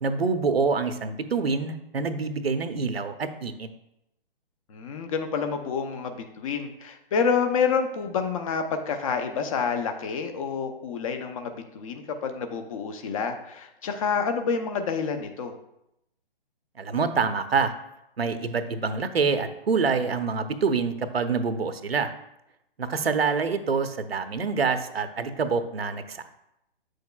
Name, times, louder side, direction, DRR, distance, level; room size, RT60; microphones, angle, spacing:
voice 1, 0.0-3.7 16.8-17.7 18.2-22.1 22.8-26.3, right 5 dB, 80° right, 10 dB, 0.8 m, -26 dB
voice 2, 4.7-15.5, left 6 dB, 35° left, 6 dB, 0.7 m, -28 dB
8.1 x 6.4 x 2.3 m, 0.83 s
figure-of-eight pair, 135°, 30 cm